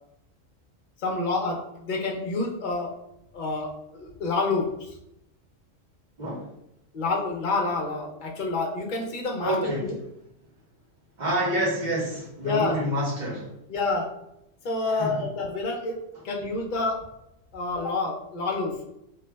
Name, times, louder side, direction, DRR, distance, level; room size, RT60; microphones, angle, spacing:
voice 1, 1.0-2.9 3.3-3.7 3.9-4.7 6.9-9.9 12.4-12.7 13.7-14.1 14.6-16.0 16.2-17.0 17.5-18.7, left 3 dB, 50° left, 0 dB, 0.6 m, -28 dB
voice 2, 6.2-6.5 9.4-9.9 11.2-13.5 14.9-15.2, right 1 dB, 45° right, -5 dB, 0.7 m, -28 dB
2.6 x 2.0 x 3.3 m, 0.81 s
omnidirectional pair, 1.4 m